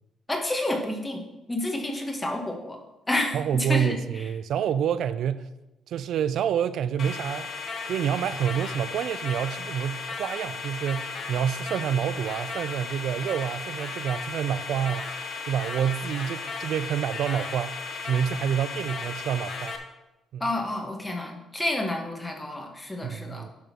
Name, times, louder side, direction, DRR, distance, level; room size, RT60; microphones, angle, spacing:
voice 1, 0.3-1.2 1.5-2.8 3.1-4.3 20.4-23.5, left 1 dB, 15° left, 1.7 m, -29 dB
voice 2, 3.3-5.5 5.9-7.5 7.9-15.2 15.5-19.7 20.3-20.5 23.0-23.5, right 8 dB, 75° right, 0.4 m, -28 dB
sound 1, 7.0-19.8, left 4 dB, 55° left, 1.2 m, -35 dB
11.0 x 4.1 x 6.1 m
cardioid pair, 90°, 0 cm